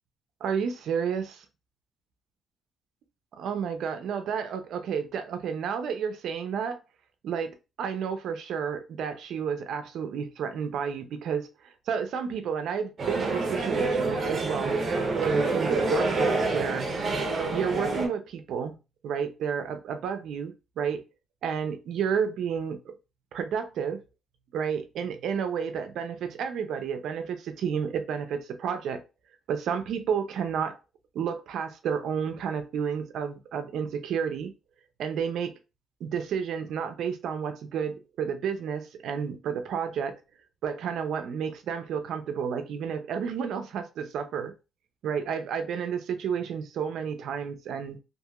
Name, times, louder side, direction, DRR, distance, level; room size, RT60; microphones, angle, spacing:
voice 1, 0.4-1.4 3.4-6.8 7.2-7.5 7.8-14.8 15.2-17.2 17.5-18.7 19.0-21.0 21.4-23.0 23.3-24.0 24.5-29.0 29.5-30.8 31.1-34.5 35.0-35.5 36.0-40.2 40.6-44.5 45.0-48.0, right 7 dB, 75° right, 0.5 m, -31 dB
sound 1, 13.0-18.1, right 3 dB, 45° right, 0.7 m, -27 dB
2.8 x 2.6 x 2.4 m
cardioid pair, 90°, 0 cm